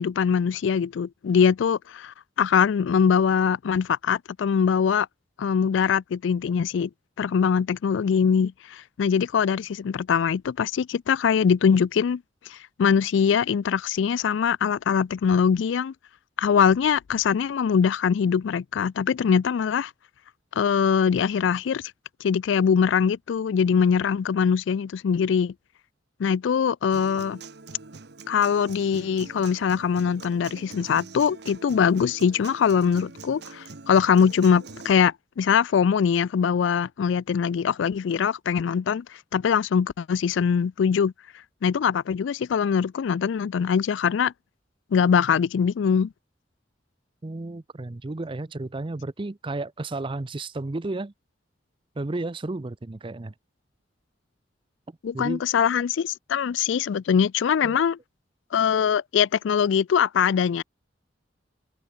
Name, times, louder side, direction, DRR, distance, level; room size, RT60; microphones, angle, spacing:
voice 1, 0.0-5.1 5.4-6.9 7.2-15.9 16.4-19.9 20.5-21.9 22.2-25.5 26.2-27.4 28.3-41.1 41.6-44.3 44.9-46.1 55.0-58.0 58.5-60.6, left 7 dB, 80° left, 0.4 m, -22 dB
Human voice / Acoustic guitar, 26.9-34.9, right 4 dB, 60° right, 1.1 m, -43 dB
voice 2, 47.2-51.1 52.0-53.3 55.1-55.4 57.6-57.8, right 2 dB, 25° right, 0.5 m, -32 dB
head